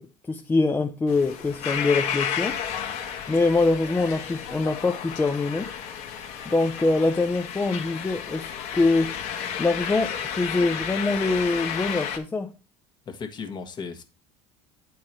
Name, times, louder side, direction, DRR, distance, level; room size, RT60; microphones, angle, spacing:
voice 1, 0.0-2.6 3.3-5.7 6.5-9.2 9.6-12.5, left 3 dB, 15° left, 0.5 m, -24 dB
sound 1, 1.1-12.2, left 8 dB, 70° left, 1.3 m, -32 dB
voice 2, 13.1-14.0, left 5 dB, 35° left, 1.4 m, -35 dB
8.5 x 4.7 x 4.3 m
supercardioid pair, 110°, 12 cm